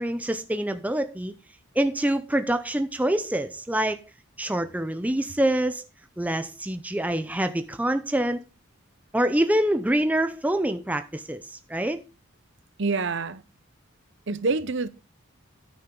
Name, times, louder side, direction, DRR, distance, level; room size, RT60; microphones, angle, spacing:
voice 1, 0.0-1.3 1.8-4.0 4.4-5.8 6.2-8.4 9.1-12.0, right 1 dB, 5° right, 0.5 m, -25 dB
voice 2, 12.8-13.4 14.3-14.9, right 3 dB, 55° right, 0.7 m, -26 dB
9.6 x 9.5 x 3.7 m
head